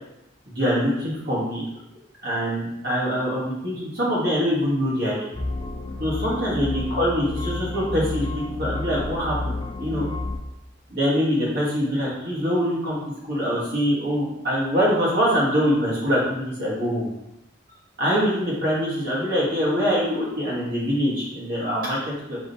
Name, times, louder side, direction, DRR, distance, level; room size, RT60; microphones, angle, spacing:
voice 1, 0.5-1.6 2.2-5.3 6.0-10.1 10.9-13.0 13.3-17.0 18.0-22.4, equal, 55° right, -6 dB, 1.4 m, -24 dB
sound 1, 5.3-10.4, left 2 dB, 25° left, 0.5 m, -30 dB
3.6 x 2.9 x 3.9 m, 0.87 s
head